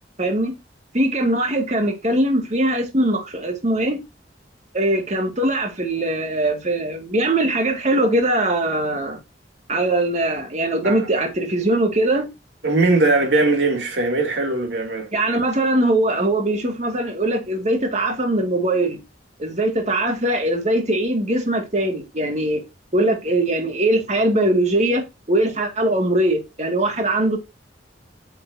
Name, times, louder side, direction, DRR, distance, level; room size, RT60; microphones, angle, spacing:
voice 1, 0.2-0.5 0.9-4.0 4.7-9.2 9.7-12.3 15.1-19.0 19.4-22.6 22.9-25.0 25.3-27.4, right 1 dB, 40° right, 2.1 m, -21 dB
voice 2, 12.6-15.1, right 2 dB, 70° right, 2.7 m, -20 dB
9.0 x 5.9 x 2.7 m
head